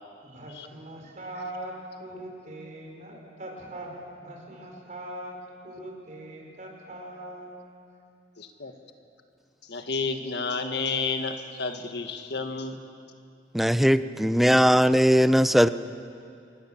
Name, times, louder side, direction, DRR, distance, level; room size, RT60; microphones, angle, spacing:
voice 1, 0.2-5.4 5.6-7.5, right 1 dB, 45° right, 0 dB, 4.9 m, -41 dB
voice 2, 8.4-8.7 9.7-12.8, left 4 dB, 65° left, 6 dB, 1.7 m, -31 dB
voice 3, 13.5-15.7, equal, ahead, 13 dB, 0.5 m, -19 dB
26.5 x 21.0 x 7.5 m, 2.5 s
head